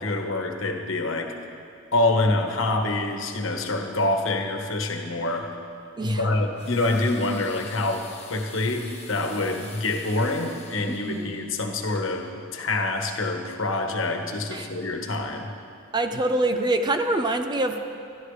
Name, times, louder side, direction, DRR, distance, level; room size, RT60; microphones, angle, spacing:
voice 1, 0.0-1.3 1.9-5.5 6.0-15.5, left 2 dB, 75° left, 4 dB, 1.3 m, -26 dB
voice 2, 6.0-6.3 10.9-11.3 14.5-14.7 15.9-17.8, right 2 dB, 20° right, 6 dB, 0.7 m, -25 dB
sound 1, 6.5-12.1, left 5 dB, 30° left, 1.4 m, -46 dB
21.5 x 13.0 x 3.3 m, 2.5 s
head